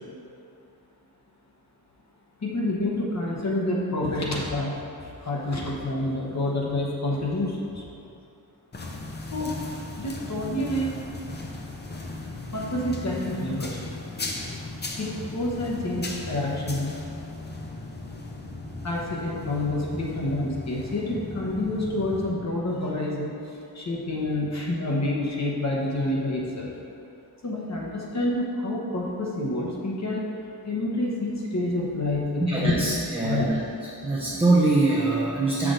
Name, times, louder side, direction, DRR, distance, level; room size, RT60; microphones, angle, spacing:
voice 1, 2.4-7.9 9.3-9.6 10.0-11.0 12.5-13.8 15.0-16.9 18.8-26.7 27.4-30.3 30.6-32.7 33.2-33.5, left 1 dB, 45° left, -4 dB, 1.0 m, -28 dB
sound 1, 8.7-22.3, left 2 dB, 25° left, 0.6 m, -37 dB
voice 2, 32.4-33.6 34.0-35.7, right 2 dB, 15° right, -6 dB, 0.7 m, -23 dB
6.5 x 6.1 x 3.8 m, 2.6 s
wide cardioid pair, 155°, 38 cm